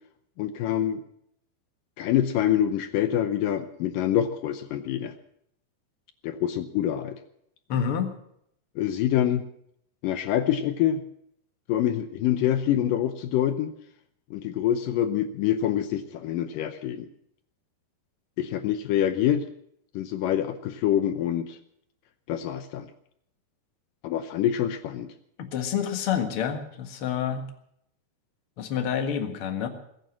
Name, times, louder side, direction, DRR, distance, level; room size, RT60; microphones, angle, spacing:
voice 1, 0.4-1.0 2.0-5.1 6.2-7.2 8.8-9.5 10.0-11.0 11.7-13.7 14.3-17.1 18.4-19.5 19.9-21.6 22.3-22.9 24.0-25.1, left 11 dB, 75° left, 10 dB, 2.0 m, -26 dB
voice 2, 7.7-8.1 25.4-27.4 28.6-29.7, left 8 dB, 50° left, 5 dB, 1.8 m, -28 dB
21.0 x 9.4 x 7.3 m, 0.72 s
omnidirectional pair, 4.7 m